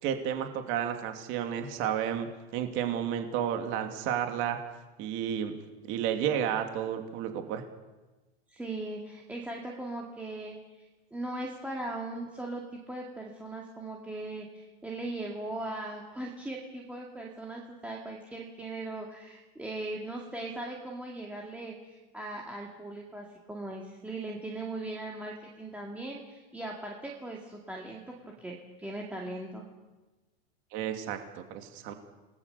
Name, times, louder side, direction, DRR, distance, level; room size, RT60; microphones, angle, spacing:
voice 1, 0.0-4.6 5.0-5.5 5.9-7.6 30.7-31.9, right 9 dB, 40° right, 6 dB, 2.6 m, -32 dB
voice 2, 8.5-29.6, right 2 dB, 5° right, -1 dB, 2.2 m, -39 dB
28.5 x 19.0 x 6.9 m, 1.1 s
supercardioid pair, 150°, 31 cm